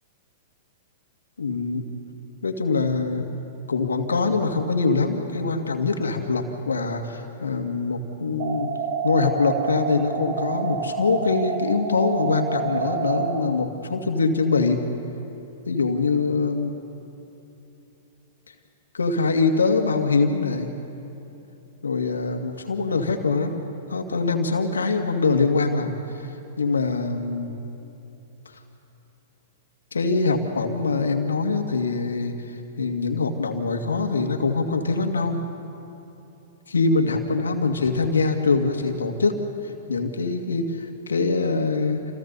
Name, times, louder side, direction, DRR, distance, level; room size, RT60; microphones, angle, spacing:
voice 1, 1.4-1.8 2.4-3.3 3.7-8.7 9.0-14.8 15.7-16.8 18.9-20.7 21.8-23.6 23.9-26.0 26.6-27.5 29.9-35.4 36.7-39.4 39.9-42.0, left 4 dB, 80° left, 5 dB, 2.2 m, -23 dB
sound 1, 8.4-13.4, right 6 dB, 55° right, 3.0 m, -28 dB
28.5 x 28.0 x 4.1 m, 2.9 s
figure-of-eight pair, 105°, 0 cm